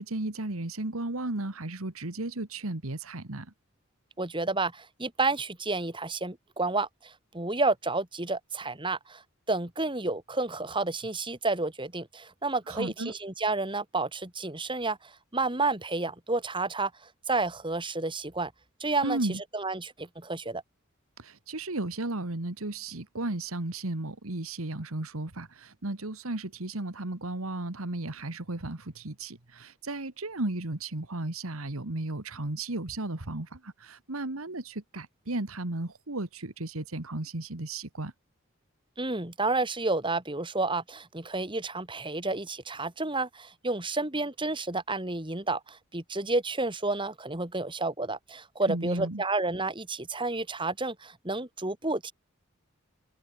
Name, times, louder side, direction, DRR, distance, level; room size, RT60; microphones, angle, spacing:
voice 1, 0.0-3.5 12.7-13.1 19.0-19.4 21.2-38.1 48.7-49.2, right 2 dB, 85° right, 1.9 m, -34 dB
voice 2, 4.2-9.2 9.5-16.9 17.3-18.5 18.8-19.2 19.5-20.6 39.0-52.1, right 3 dB, 25° right, 2.9 m, -30 dB
head